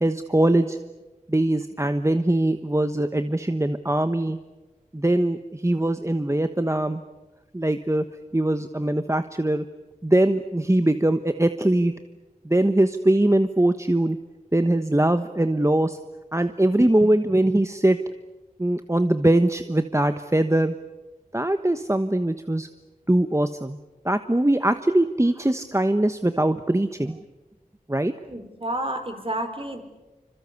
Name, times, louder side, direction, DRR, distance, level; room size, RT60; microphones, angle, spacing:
voice 1, 0.0-0.8 1.3-4.4 4.9-7.0 7.5-8.0 8.3-9.6 10.0-11.9 12.4-14.2 14.5-16.0 16.3-18.0 18.6-20.7 21.3-22.7 23.1-23.8 24.0-27.2 27.9-28.1, right 1 dB, 20° right, 9 dB, 1.2 m, -22 dB
voice 2, 28.3-29.8, right 1 dB, 40° right, 7 dB, 4.6 m, -30 dB
27.0 x 26.0 x 8.3 m, 1.1 s
wide cardioid pair, 45°, 14 cm